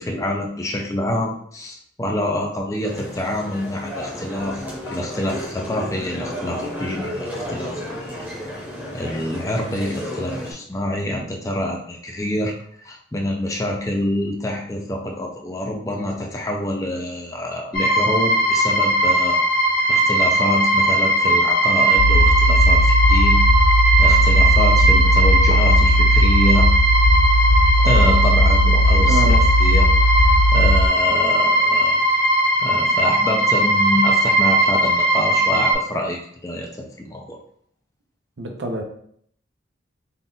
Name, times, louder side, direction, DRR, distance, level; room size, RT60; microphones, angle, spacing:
voice 1, 0.0-7.7 8.0-8.1 8.4-8.5 8.9-12.5 12.8-19.4 19.9-23.4 23.6-26.7 27.8-29.9 30.5-32.0 32.6-37.4, left 1 dB, 15° left, 1 dB, 0.5 m, -26 dB
sound 1, 2.8-10.5, left 1 dB, 10° right, 0.9 m, -32 dB
sound 2, 17.7-35.7, right 1 dB, 50° left, 1.2 m, -18 dB
sound 3, 22.0-30.9, equal, 80° left, 0.3 m, -16 dB
voice 2, 29.1-29.4 38.4-38.8, right 1 dB, 70° right, 3 dB, 0.7 m, -25 dB
4.0 x 2.4 x 3.8 m, 0.64 s
head